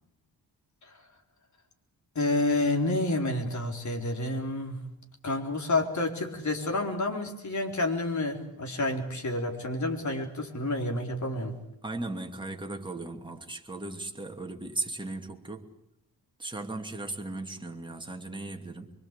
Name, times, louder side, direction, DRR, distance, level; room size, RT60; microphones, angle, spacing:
voice 1, 2.1-4.8 5.2-11.5, left 2 dB, 50° left, 4.4 m, -29 dB
voice 2, 11.8-15.7 16.4-18.9, right 2 dB, 15° right, 2.8 m, -37 dB
24.5 x 24.0 x 8.5 m
wide cardioid pair, 115°, 37 cm